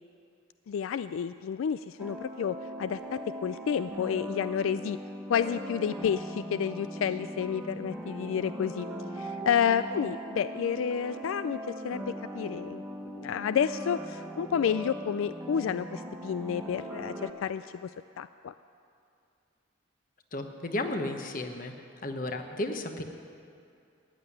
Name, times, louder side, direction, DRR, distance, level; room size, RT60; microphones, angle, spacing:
voice 1, 0.7-5.0 5.3-8.9 9.1-17.9 18.2-18.5, left 7 dB, 85° left, 13 dB, 0.3 m, -30 dB
sound 1, 2.0-17.3, equal, 10° right, 1.1 m, -39 dB
voice 2, 20.3-21.7 22.0-23.0, left 1 dB, 45° left, 6 dB, 1.1 m, -33 dB
14.5 x 9.8 x 9.4 m, 2.5 s
head